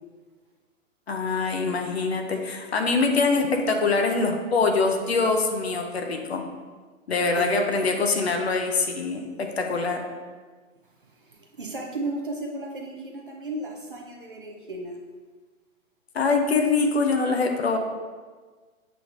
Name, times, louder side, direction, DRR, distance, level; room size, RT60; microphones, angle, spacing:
voice 1, 1.1-6.4 7.1-10.0 16.1-17.8, left 4 dB, 50° left, 4 dB, 0.5 m, -24 dB
voice 2, 7.3-8.2 11.0-15.0, right 2 dB, 40° right, 0 dB, 0.4 m, -35 dB
6.9 x 3.2 x 2.4 m, 1.4 s
hypercardioid pair, 160°, 43 cm